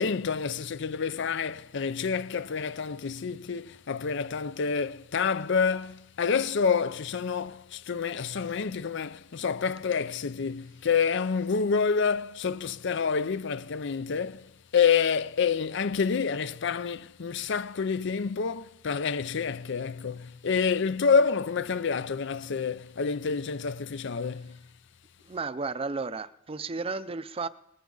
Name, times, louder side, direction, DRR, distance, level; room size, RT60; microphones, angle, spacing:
voice 1, 0.0-24.6, left 5 dB, 65° left, 0.5 m, -28 dB
voice 2, 25.2-27.5, right 4 dB, 30° right, 0.5 m, -33 dB
20.0 x 14.5 x 3.9 m
head